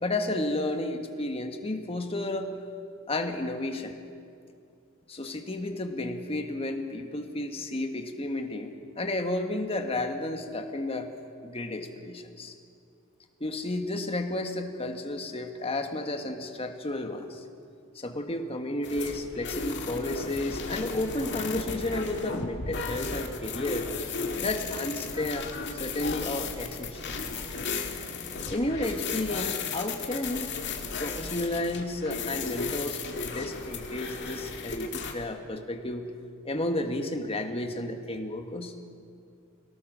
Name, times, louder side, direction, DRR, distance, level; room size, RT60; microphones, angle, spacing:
voice 1, 0.0-2.5 3.1-4.0 5.1-11.1 11.4-12.5 13.4-17.4 17.9-23.9 24.4-25.5 25.8-27.1 28.5-30.5 31.0-36.1 36.4-38.7, left 2 dB, 25° left, 5 dB, 1.4 m, -32 dB
sound 1, 18.8-35.1, left 4 dB, 55° left, 2.0 m, -35 dB
22.5 x 18.5 x 6.2 m, 2.4 s
head